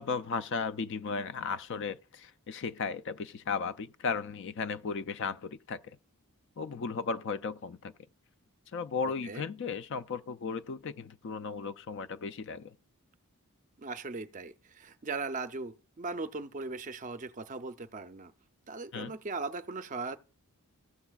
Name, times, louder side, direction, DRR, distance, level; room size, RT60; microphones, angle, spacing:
voice 1, 0.0-6.0 6.6-7.9 8.7-12.8 18.9-19.1, left 5 dB, 55° left, 0.4 m, -35 dB
voice 2, 9.0-9.4 13.8-18.3 18.7-20.2, right 3 dB, 35° right, 0.5 m, -39 dB
15.5 x 7.0 x 2.3 m
head